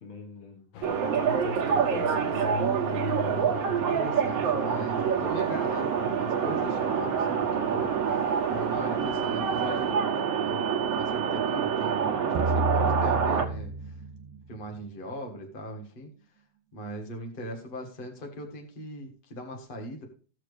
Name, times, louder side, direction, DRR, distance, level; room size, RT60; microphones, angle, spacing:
voice 1, 0.0-2.6, left 5 dB, 50° left, 3 dB, 1.9 m, -42 dB
sound 1, 0.7-9.9, left 6 dB, 65° left, 2.4 m, -41 dB
sound 2, 0.8-13.4, right 7 dB, 55° right, 2.1 m, -27 dB
voice 2, 3.3-10.6 10.9-14.0 14.5-16.1 16.7-20.0, equal, 85° left, 3 dB, 0.4 m, -40 dB
sound 3, 12.4-14.6, right 2 dB, 80° right, 2.6 m, -30 dB
16.5 x 6.8 x 3.3 m, 0.40 s
omnidirectional pair, 3.7 m